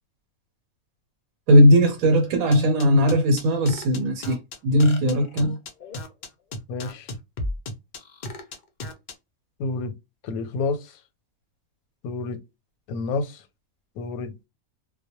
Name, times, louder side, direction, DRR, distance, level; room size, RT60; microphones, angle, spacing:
voice 1, 1.5-4.4 4.6-5.6, equal, 85° right, 1.1 m, -18 dB
sound 1, 2.5-9.1, left 2 dB, 60° left, 0.5 m, -34 dB
voice 2, 6.7-7.1 9.6-9.9 10.2-11.0 12.0-12.4 12.9-13.4 14.0-14.4, left 3 dB, 90° left, 1.1 m, -29 dB
2.2 x 2.1 x 2.8 m
omnidirectional pair, 1.4 m